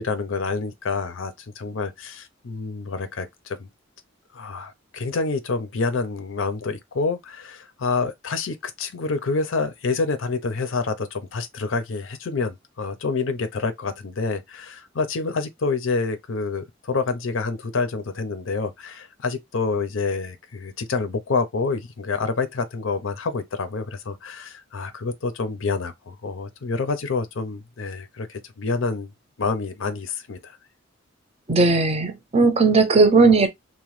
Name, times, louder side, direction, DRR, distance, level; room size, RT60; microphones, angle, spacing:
voice 1, 0.0-3.7 4.3-29.1 29.4-30.5, left 4 dB, 90° left, 0.6 m, -27 dB
voice 2, 31.5-33.5, right 3 dB, 30° right, 0.5 m, -17 dB
2.9 x 2.1 x 3.1 m
head